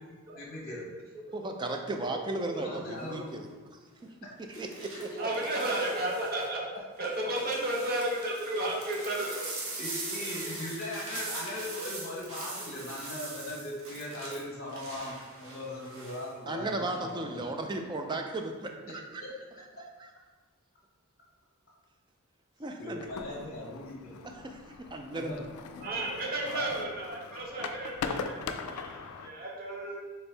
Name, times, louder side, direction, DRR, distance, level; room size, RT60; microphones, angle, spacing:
voice 1, 0.4-1.0 2.0-2.1 2.4-3.3 5.1-5.2 9.8-17.5 19.2-19.3 22.8-24.1 25.1-25.4 25.8-25.9 26.5-26.7, left 1 dB, 45° left, -4 dB, 1.0 m, -39 dB
voice 2, 1.3-3.5 4.0-4.1 4.6-5.1 5.4-5.5 16.5-19.2 20.0-20.1 22.6-23.0 24.2-25.3, right 2 dB, 20° right, 4 dB, 0.3 m, -35 dB
sound 1, 2.9-3.2 4.5-6.5 7.0-16.3 16.6-17.1, right 2 dB, 75° right, 0.9 m, -42 dB
voice 3, 5.2-6.6 7.0-9.5 25.8-30.0, right 1 dB, 45° right, -2 dB, 0.8 m, -33 dB
sound 2, 23.0-29.3, left 5 dB, 90° left, 0.3 m, -40 dB
4.3 x 3.3 x 3.3 m, 1.4 s
head